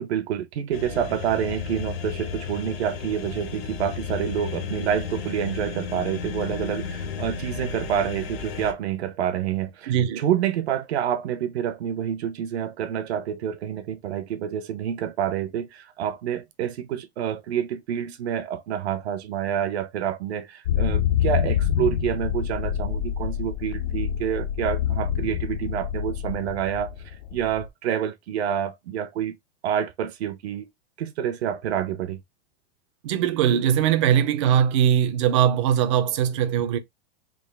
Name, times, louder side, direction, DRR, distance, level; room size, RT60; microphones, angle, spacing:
voice 1, 0.0-29.3 29.6-30.7 31.0-32.2, right 9 dB, 80° right, 0.8 m, -28 dB
sound 1, 0.7-8.7, left 6 dB, 65° left, 0.9 m, -33 dB
voice 2, 9.9-10.2 33.0-36.8, right 9 dB, 30° right, 0.4 m, -21 dB
sound 2, 20.7-27.7, left 9 dB, 45° left, 0.4 m, -26 dB
3.6 x 2.3 x 3.2 m
supercardioid pair, 165°, 32 cm